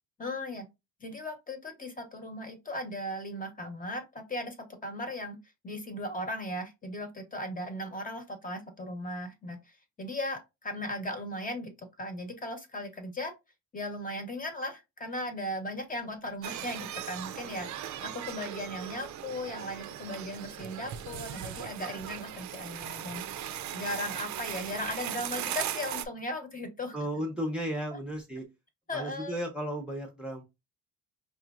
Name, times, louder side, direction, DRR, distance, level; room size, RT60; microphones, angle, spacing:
voice 1, 0.2-0.7 1.0-4.6 4.8-5.4 5.6-13.3 13.7-23.5 23.7-27.0 28.9-29.4, left 1 dB, 25° left, 1.0 m, -37 dB
sound 1, 16.4-26.1, right 10 dB, 55° right, 0.5 m, -38 dB
voice 2, 26.9-28.4 28.9-30.4, equal, 5° right, 0.7 m, -34 dB
4.9 x 3.0 x 2.4 m
cardioid pair, 135°, 34 cm